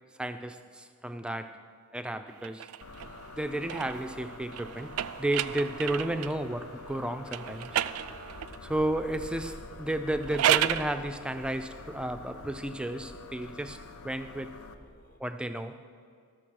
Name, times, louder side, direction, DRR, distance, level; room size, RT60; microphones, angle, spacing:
voice 1, 0.2-1.6 1.9-2.7 3.3-7.8 8.6-14.5 15.2-15.8, right 1 dB, 5° right, 9 dB, 0.3 m, -33 dB
sound 1, 2.4-6.4 7.3-8.6 10.1-10.9, right 11 dB, 85° right, 0.3 m, -32 dB
sound 2, 2.8-14.7, left 4 dB, 80° left, 0.6 m, -48 dB
sound 3, 6.1-15.2, equal, 40° left, 0.7 m, -52 dB
13.5 x 6.6 x 6.2 m, 2.2 s
head